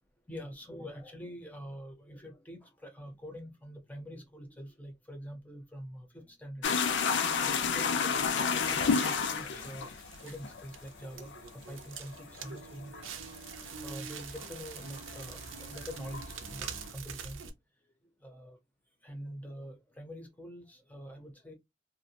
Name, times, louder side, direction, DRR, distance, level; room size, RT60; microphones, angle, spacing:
voice 1, 0.3-7.0 7.4-9.9 10.2-12.9 13.8-15.4 15.7-17.4 18.2-18.6 19.0-21.5, equal, 10° left, 0.6 m, -45 dB
sound 1, 6.6-15.2 15.4-16.8, left 6 dB, 65° left, 0.4 m, -31 dB
Crackle, 7.3-17.5, right 6 dB, 90° right, 0.5 m, -46 dB
2.6 x 2.1 x 2.8 m
head